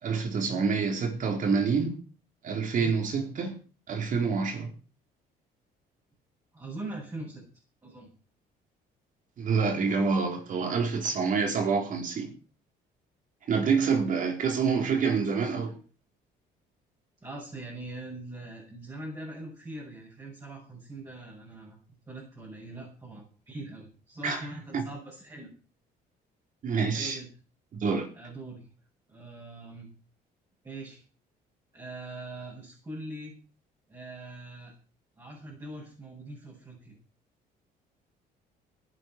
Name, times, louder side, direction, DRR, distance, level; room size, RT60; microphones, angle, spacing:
voice 1, 0.0-2.0 2.4-3.5 3.9-4.7 9.4-12.3 13.5-15.7 24.2-24.5 24.7-24.8 26.6-27.2 27.7-28.1, right 5 dB, 50° right, 4.3 m, -27 dB
voice 2, 6.5-7.4 7.8-8.1 13.6-14.1 17.2-21.8 22.1-25.5 26.9-27.3 28.1-28.7 29.1-29.9 30.6-31.0 31.7-33.3 33.9-34.7 35.2-37.0, right 2 dB, 20° right, 7.7 m, -42 dB
18.0 x 11.0 x 4.7 m
cardioid pair, 110°, 17 cm